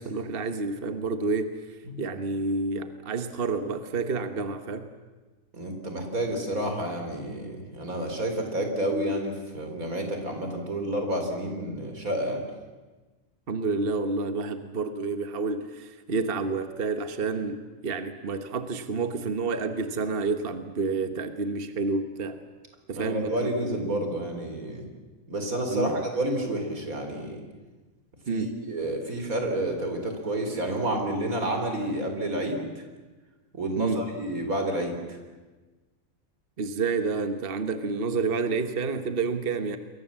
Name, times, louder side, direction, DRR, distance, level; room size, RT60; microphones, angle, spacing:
voice 1, 0.0-4.9 13.5-22.4 22.9-23.8 25.7-26.0 28.3-28.5 33.8-34.1 36.6-39.8, right 4 dB, 45° right, 8 dB, 1.4 m, -29 dB
voice 2, 5.5-12.4 22.9-24.9 25.3-27.4 28.3-32.8 33.5-35.2, right 1 dB, 85° right, 4 dB, 4.3 m, -30 dB
28.5 x 22.5 x 7.4 m, 1.3 s
omnidirectional pair, 1.4 m